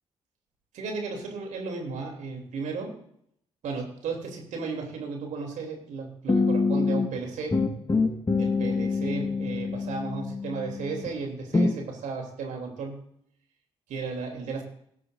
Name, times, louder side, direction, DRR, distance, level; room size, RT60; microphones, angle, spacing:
voice 1, 0.7-2.9 3.6-7.6 8.3-13.0 13.9-14.6, right 4 dB, 60° right, 2 dB, 3.0 m, -34 dB
sound 1, 6.3-7.2 7.5-11.1 11.5-11.8, left 4 dB, 25° left, 1.4 m, -26 dB
18.0 x 11.0 x 2.6 m, 0.70 s
figure-of-eight pair, 40°, 14 cm